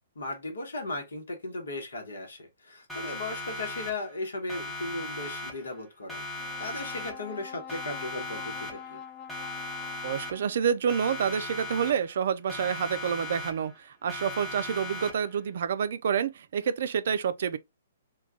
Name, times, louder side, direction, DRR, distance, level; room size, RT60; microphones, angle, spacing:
voice 1, 0.1-6.3 6.6-9.0, left 2 dB, 75° left, 1.0 m, -36 dB
Siren, 2.9-4.2 4.5-5.8 6.1-7.4 7.7-9.0 9.3-10.6 10.9-12.2 12.5-13.8 14.1-15.4, left 2 dB, ahead, 0.8 m, -38 dB
Brass instrument, 6.4-10.8, left 8 dB, 30° left, 0.3 m, -45 dB
voice 2, 10.0-17.6, right 7 dB, 60° right, 0.3 m, -28 dB
2.3 x 2.2 x 3.5 m
figure-of-eight pair, 125°, 0 cm